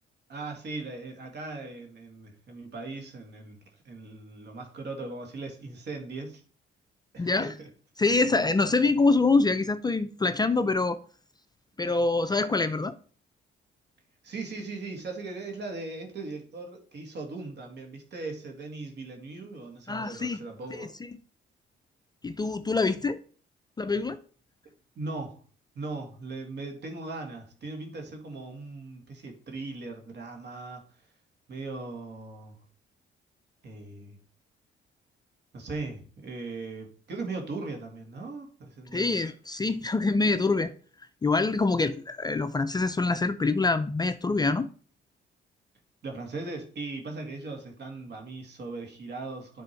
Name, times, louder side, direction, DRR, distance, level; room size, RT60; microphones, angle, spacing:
voice 1, 0.3-3.6 3.8-6.4 7.1-7.7 14.2-20.9 25.0-25.4 25.8-31.1 31.5-32.6 33.6-34.2 35.5-39.2 46.0-49.6, right 3 dB, 60° right, 2.0 m, -39 dB
voice 2, 7.2-7.5 8.0-11.0 11.8-12.9 19.9-20.4 20.7-20.9 22.2-23.2 23.8-24.2 38.9-40.7 41.2-44.7, left 3 dB, 20° left, 0.4 m, -25 dB
9.8 x 3.5 x 4.4 m
cardioid pair, 90°, 20 cm